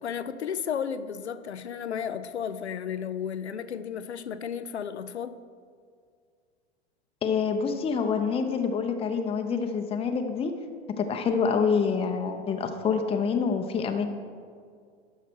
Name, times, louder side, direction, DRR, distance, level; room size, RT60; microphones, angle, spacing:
voice 1, 0.0-5.4, left 8 dB, 85° left, 0.6 m, -33 dB
voice 2, 7.2-10.5 11.0-14.1, left 6 dB, 20° left, 0.7 m, -26 dB
12.0 x 5.9 x 4.5 m
figure-of-eight pair, 90°, 32 cm